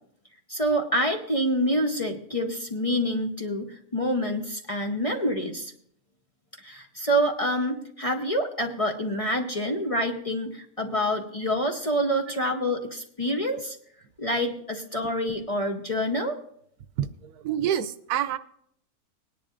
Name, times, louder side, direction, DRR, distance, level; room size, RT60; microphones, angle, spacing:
voice 1, 0.5-5.7 6.6-13.8 14.2-16.4, equal, 30° left, 3 dB, 0.8 m, -27 dB
voice 2, 17.0-18.4, right 10 dB, 90° right, 13 dB, 1.2 m, -27 dB
20.0 x 10.0 x 2.5 m, 0.68 s
omnidirectional pair, 1.6 m